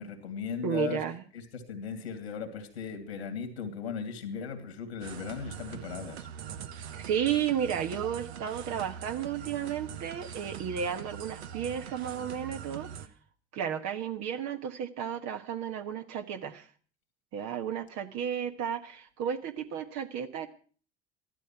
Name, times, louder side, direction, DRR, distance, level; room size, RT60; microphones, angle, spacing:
voice 1, 0.0-1.0 1.3-6.3, left 6 dB, 85° left, 7 dB, 2.5 m, -37 dB
voice 2, 0.6-1.2 6.9-12.9 13.5-16.7 17.3-20.5, right 8 dB, 55° right, 6 dB, 1.4 m, -33 dB
sound 1, 5.0-13.1, right 8 dB, 80° right, 1.1 m, -43 dB
14.0 x 12.5 x 5.8 m, 0.41 s
hypercardioid pair, 70°, 31 cm